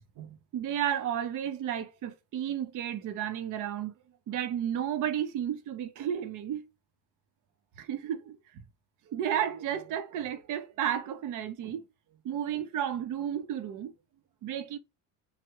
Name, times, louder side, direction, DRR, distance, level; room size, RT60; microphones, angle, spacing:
voice 1, 0.2-3.9 4.3-6.7 7.8-8.4 9.1-11.8 12.2-13.9 14.4-14.8, right 10 dB, 60° right, 0.6 m, -32 dB
3.5 x 2.0 x 2.9 m
cardioid pair, 145°, 36 cm